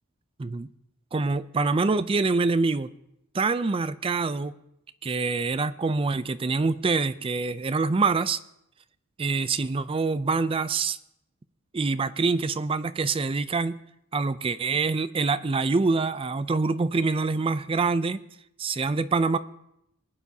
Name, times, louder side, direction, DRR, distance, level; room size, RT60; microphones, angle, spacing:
voice 1, 1.1-2.9 3.3-4.5 5.0-8.4 9.2-11.0 11.7-13.8 14.1-18.2 18.6-19.4, right 4 dB, 25° right, 13 dB, 0.4 m, -25 dB
20.5 x 9.2 x 2.8 m, 0.81 s
head